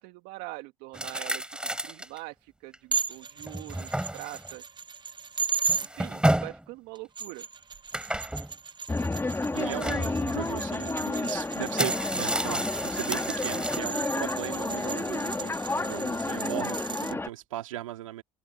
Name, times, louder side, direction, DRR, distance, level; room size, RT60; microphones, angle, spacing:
voice 1, 0.0-4.6 5.8-7.5, right 22 dB, 70° right, 1.9 m, -43 dB
sound 1, 0.9-2.2 2.7-2.8 3.4-4.5 5.7-6.6 7.9-8.5 9.6-10.1 11.1-11.2 11.6-13.8, right 1 dB, 5° right, 4.1 m, -31 dB
sound 2, 2.9-5.9 6.9-17.1, right 5 dB, 30° right, 0.9 m, -36 dB
sound 3, 8.9-17.3, left 2 dB, 15° left, 2.1 m, -31 dB
voice 2, 9.5-18.2, right 14 dB, 90° right, 2.8 m, -37 dB
hypercardioid pair, 70°, 16 cm